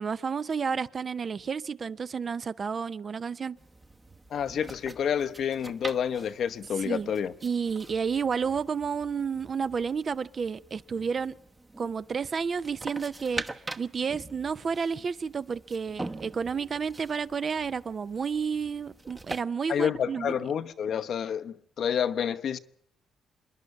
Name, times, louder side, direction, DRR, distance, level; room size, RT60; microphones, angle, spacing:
voice 1, 0.0-3.6 6.8-7.1 7.4-11.3 11.8-13.4 13.8-20.4, right 6 dB, 45° right, 0.7 m, -31 dB
sound 1, 3.6-19.4, right 2 dB, 20° right, 1.0 m, -44 dB
voice 2, 4.3-7.3 19.7-22.6, left 8 dB, 65° left, 0.9 m, -29 dB
27.0 x 11.0 x 9.4 m
cardioid pair, 90°, 0 cm